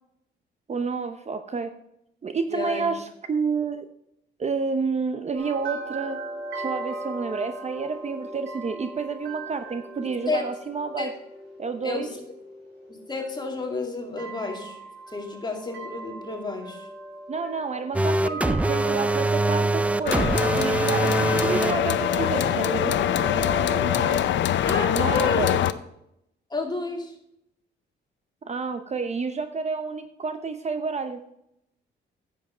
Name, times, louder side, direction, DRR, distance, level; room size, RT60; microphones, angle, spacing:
voice 1, 0.7-1.7 2.2-3.8 4.4-6.2 6.5-11.1 11.6-12.1 17.3-23.0 24.9-25.6 28.5-31.2, right 4 dB, 35° right, 8 dB, 0.8 m, -29 dB
voice 2, 2.5-3.0 10.3-10.5 11.0-11.1 11.8-12.2 12.9-14.8 15.1-16.9 24.6-25.5 26.5-27.1, left 3 dB, 20° left, 2 dB, 2.4 m, -31 dB
sound 1, 5.3-24.2, right 2 dB, 75° right, 4.2 m, -37 dB
sound 2, 17.9-21.7, right 2 dB, 5° right, 0.4 m, -23 dB
sound 3, 20.1-25.7, left 11 dB, 70° left, 0.6 m, -24 dB
9.9 x 7.4 x 5.0 m, 0.77 s
cardioid pair, 90°, 20 cm